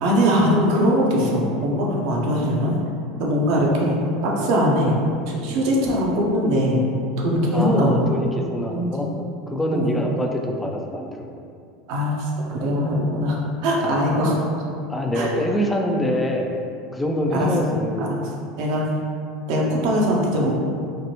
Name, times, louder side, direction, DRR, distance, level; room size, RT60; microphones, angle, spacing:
voice 1, 0.0-2.7 3.2-5.0 5.3-6.8 7.2-8.1 8.7-9.0 9.7-10.0 11.9-13.4 13.6-14.4 15.1-15.3 17.3-18.2 18.6-18.8 19.5-20.6, equal, 60° right, -2 dB, 0.6 m, -21 dB
voice 2, 7.5-9.1 9.5-11.1 13.8-14.0 14.9-16.6 16.9-18.1, equal, 10° left, 1 dB, 0.4 m, -25 dB
3.4 x 2.1 x 2.7 m, 2.4 s
hypercardioid pair, 80°, 0 cm